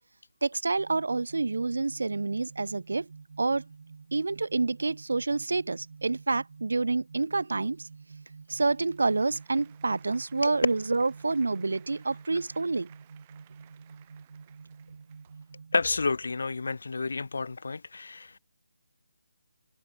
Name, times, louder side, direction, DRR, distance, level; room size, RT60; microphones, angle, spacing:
voice 1, 0.4-3.1 3.4-3.6 4.1-7.9 8.5-12.9, right 3 dB, 75° right, 0.6 m, -28 dB
sound 1, 0.8-15.8, right 5 dB, 55° right, 1.1 m, -49 dB
Applause, 8.1-15.7, right 14 dB, 25° right, 5.7 m, -61 dB
voice 2, 15.7-18.4, left 4 dB, 65° left, 0.7 m, -30 dB
figure-of-eight pair, 160°, 0 cm